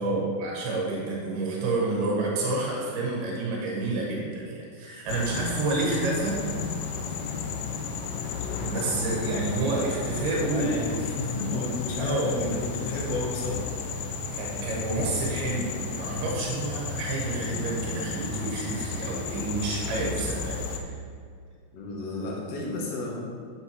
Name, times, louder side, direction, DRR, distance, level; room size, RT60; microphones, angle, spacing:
voice 1, 0.0-6.4 8.6-11.0 12.0-12.5 14.3-20.9, right 3 dB, 90° right, -3 dB, 3.4 m, -29 dB
sound 1, 5.1-20.8, left 5 dB, 80° left, 2.0 m, -33 dB
voice 2, 10.5-13.7 21.7-23.2, left 2 dB, 55° left, -2 dB, 2.0 m, -32 dB
8.6 x 7.8 x 3.2 m, 2.2 s
omnidirectional pair, 4.3 m